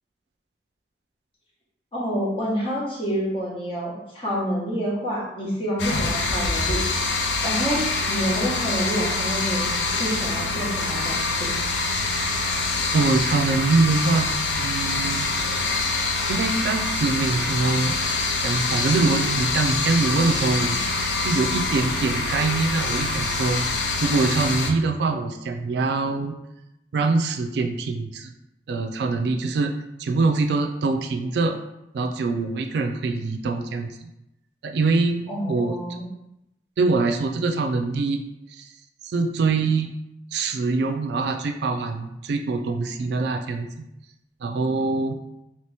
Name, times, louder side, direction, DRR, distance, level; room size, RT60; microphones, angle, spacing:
voice 1, 1.9-6.8 7.4-11.5 35.3-36.0, equal, 30° left, -5 dB, 1.0 m, -28 dB
sound 1, 5.8-24.7, left 3 dB, 90° left, 0.5 m, -25 dB
voice 2, 12.9-14.3 14.5-15.3 16.3-18.0 18.4-20.8 21.2-23.6 24.0-26.3 26.9-28.3 28.7-29.7 30.0-31.5 31.9-34.1 34.6-35.8 36.8-38.2 38.6-38.7 39.0-39.9 40.3-43.7 44.4-45.2, right 3 dB, 65° right, 5 dB, 0.3 m, -24 dB
2.9 x 2.8 x 3.4 m, 0.87 s
head